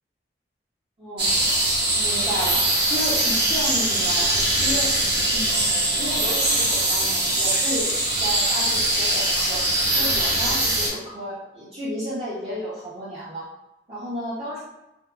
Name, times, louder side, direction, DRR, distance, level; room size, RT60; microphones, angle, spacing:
voice 1, 1.0-1.4 2.0-4.3 4.6-4.9 5.3-5.5 6.0-9.6 9.9-13.4 13.9-14.6, equal, 35° right, -11 dB, 0.6 m, -32 dB
sound 1, 1.2-10.9, right 1 dB, 60° right, 0.8 m, -22 dB
2.6 x 2.2 x 2.2 m, 0.94 s
head